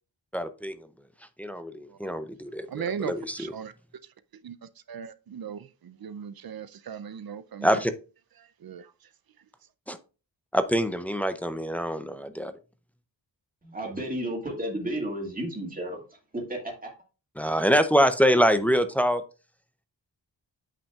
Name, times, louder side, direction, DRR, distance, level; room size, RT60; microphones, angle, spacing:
voice 1, 0.3-0.7 1.4-2.7 3.0-3.4 7.6-7.9 9.9-10.0 10.5-12.5 17.4-19.2, equal, 5° left, 0.5 m, -24 dB
voice 2, 2.7-3.7 4.4-7.8 8.4-9.1, right 7 dB, 55° right, 0.5 m, -38 dB
voice 3, 13.6-16.9, right 1 dB, 20° right, 2.0 m, -33 dB
8.6 x 5.3 x 2.3 m
wide cardioid pair, 130°, 45 cm